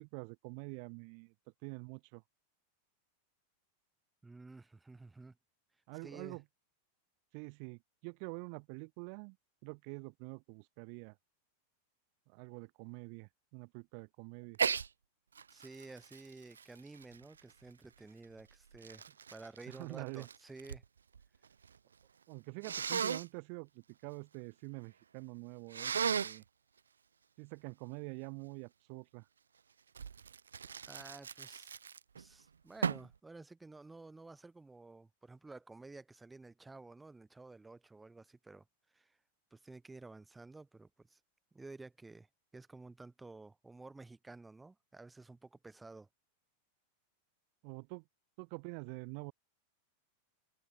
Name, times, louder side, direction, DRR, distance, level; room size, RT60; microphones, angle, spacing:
voice 1, 0.0-1.3 1.6-2.2 5.9-6.4 7.3-9.4 9.6-11.1 12.3-14.6 19.7-20.3 22.3-25.9 26.2-26.4 27.4-29.2 47.6-48.0 48.4-49.3, right 40 dB or more, 45° right, 1.2 m, -46 dB
voice 2, 4.2-5.3 6.0-6.4 15.5-19.0 19.3-20.8 30.8-31.8 32.2-39.2 39.5-41.2 41.5-42.3 42.5-46.1, right 3 dB, 10° right, 1.7 m, -53 dB
Sneeze, 14.5-14.9 15.3-17.7 18.4-20.8 21.1-21.8 22.6-23.3 25.7-26.4 29.9-32.2 32.8-33.1, right 6 dB, 70° right, 1.2 m, -37 dB
figure-of-eight pair, 90°, 0 cm